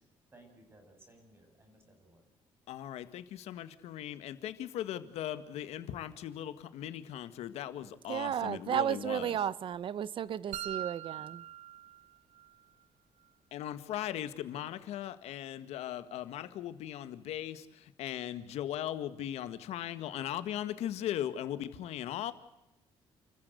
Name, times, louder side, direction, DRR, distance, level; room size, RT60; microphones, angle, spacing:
voice 1, 0.3-2.2, right 1 dB, 20° right, 8.0 m, -59 dB
voice 2, 2.7-9.4 13.5-22.3, left 11 dB, 85° left, 1.8 m, -38 dB
voice 3, 8.1-11.4, right 9 dB, 55° right, 0.9 m, -33 dB
sound 1, 10.5-12.5, right 12 dB, 90° right, 1.0 m, -42 dB
29.5 x 15.0 x 8.1 m
cardioid pair, 130°, 11 cm